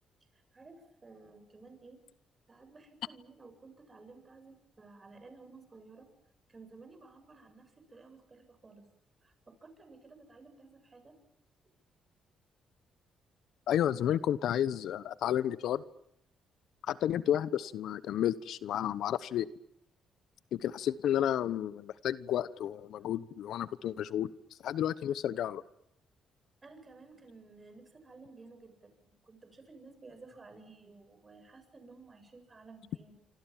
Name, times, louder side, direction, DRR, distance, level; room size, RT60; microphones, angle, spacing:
voice 1, 0.3-2.0 2.5-6.1 6.5-8.8 9.2-11.1 26.6-33.3, right 3 dB, 30° right, 7 dB, 7.9 m, -54 dB
voice 2, 13.7-15.8 16.9-19.5 20.5-24.3 24.6-25.6, left 11 dB, 75° left, 17 dB, 1.0 m, -31 dB
26.5 x 26.5 x 7.5 m, 0.78 s
cardioid pair, 90°, 0 cm